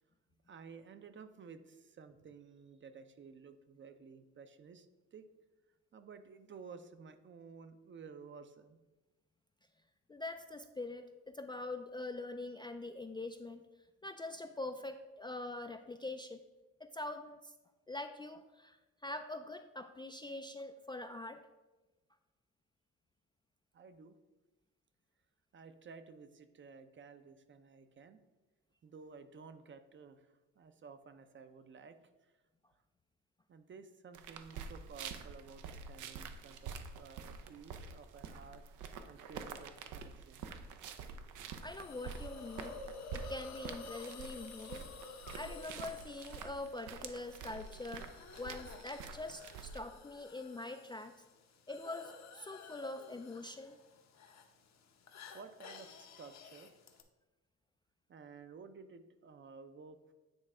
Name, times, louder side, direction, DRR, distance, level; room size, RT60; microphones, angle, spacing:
voice 1, 0.5-5.3 5.9-8.8 23.7-24.2 25.5-28.2 28.8-32.3 33.5-38.6 39.1-40.4 55.3-56.7 58.1-60.1, right 5 dB, 40° right, 10 dB, 0.6 m, -54 dB
voice 2, 10.1-13.6 14.0-16.4 16.8-17.5 17.9-21.5 41.6-42.8 43.1-44.9 45.3-51.1 51.7-53.7, left 2 dB, 15° left, 6 dB, 0.3 m, -44 dB
sound 1, 34.1-49.8, right 6 dB, 85° right, 0.6 m, -47 dB
Hiss, 41.6-57.0, left 4 dB, 60° left, 0.8 m, -52 dB
8.8 x 3.2 x 4.8 m, 1.1 s
cardioid pair, 90°, 30 cm